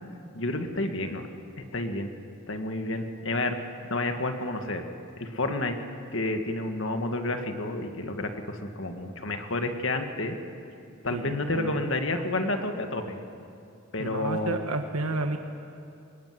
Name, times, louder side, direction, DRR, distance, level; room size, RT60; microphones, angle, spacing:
voice 1, 0.3-1.2 1.6-2.1 2.5-3.6 3.9-4.8 5.2-5.8 6.1-10.4 11.0-13.2 13.9-14.7, left 2 dB, 60° left, 5 dB, 2.0 m, -30 dB
voice 2, 14.0-15.4, right 2 dB, 90° right, 5 dB, 1.5 m, -30 dB
24.5 x 22.0 x 9.6 m, 2.6 s
head